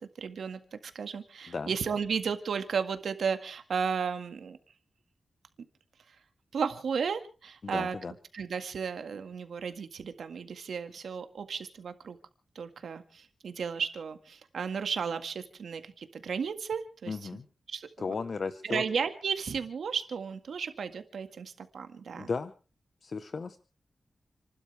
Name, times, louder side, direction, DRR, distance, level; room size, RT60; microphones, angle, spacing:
voice 1, 0.2-4.6 6.1-6.2 6.5-8.0 8.3-12.2 12.6-17.3 17.7-18.1 18.6-22.3, right 6 dB, 90° right, 8 dB, 1.8 m, -34 dB
voice 2, 7.6-8.1 17.1-17.5 18.0-18.8 22.1-22.5 23.0-23.6, left 4 dB, 55° left, 11 dB, 1.0 m, -35 dB
30.0 x 12.0 x 3.4 m, 0.36 s
wide cardioid pair, 105°, 0 cm